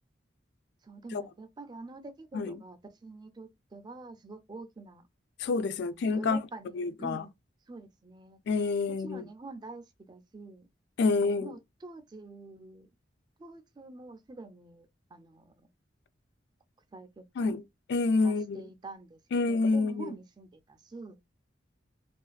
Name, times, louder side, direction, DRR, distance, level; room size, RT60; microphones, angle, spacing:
voice 1, 0.8-5.0 5.8-7.3 7.7-8.4 9.0-10.7 11.1-12.9 13.4-15.5 16.9-17.6 18.2-19.2 19.5-21.2, right 3 dB, 25° right, 0.3 m, -46 dB
voice 2, 5.4-6.4 6.7-7.2 8.5-9.2 11.0-11.6 17.4-17.6 17.9-18.6 19.3-20.1, left 3 dB, 60° left, 0.3 m, -28 dB
2.4 x 2.4 x 2.2 m
head